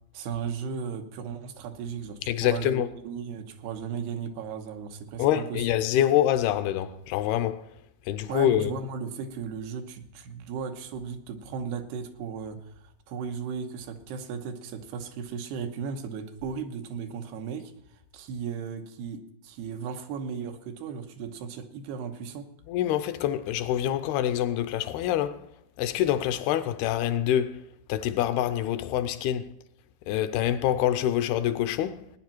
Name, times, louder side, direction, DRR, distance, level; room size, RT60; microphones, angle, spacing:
voice 1, 0.1-5.6 8.3-12.7 13.1-17.7 18.1-22.5, right 6 dB, 80° right, 3.1 m, -36 dB
voice 2, 2.3-2.9 5.2-7.7 8.1-8.7 22.7-25.5 25.8-29.5 30.1-32.0, left 11 dB, 80° left, 2.5 m, -26 dB
18.0 x 10.0 x 4.4 m
omnidirectional pair, 4.6 m